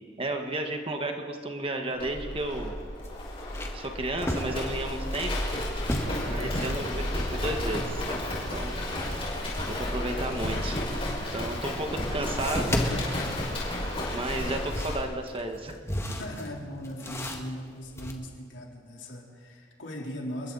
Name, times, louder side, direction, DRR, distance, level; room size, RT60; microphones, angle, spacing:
voice 1, 0.2-2.7 3.7-5.3 6.3-8.2 8.5-9.3 9.7-10.8 11.3-12.8 14.1-15.7, right 2 dB, 30° right, 4 dB, 1.7 m, -33 dB
sound 1, 1.9-2.0 2.4-2.5 3.0-5.4 5.8-6.9 11.2-11.3 12.4-13.9 14.4-18.1, left 1 dB, 15° left, 1.8 m, -34 dB
Livestock farm animals working animals, 2.0-15.0, left 1 dB, 30° left, 6.0 m, -32 dB
voice 2, 6.1-6.6 16.2-20.5, equal, 75° left, -1 dB, 3.9 m, -39 dB
29.0 x 22.0 x 4.2 m, 2.1 s
head